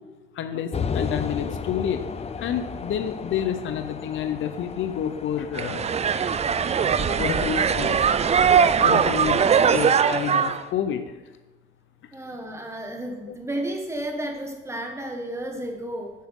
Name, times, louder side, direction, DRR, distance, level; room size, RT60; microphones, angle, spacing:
voice 1, 0.4-2.0 2.4-5.9 7.0-8.0 8.4-8.5 8.8-9.4 9.7-11.1, left 9 dB, 75° left, 9 dB, 0.7 m, -29 dB
sound 1, 0.7-9.2, left 6 dB, 30° left, 0.5 m, -35 dB
sound 2, 5.5-10.6, right 7 dB, 35° right, 0.4 m, -21 dB
voice 2, 12.1-16.1, right 1 dB, 15° right, 2 dB, 1.6 m, -32 dB
8.5 x 7.7 x 3.7 m, 1.1 s
cardioid pair, 90°, 20 cm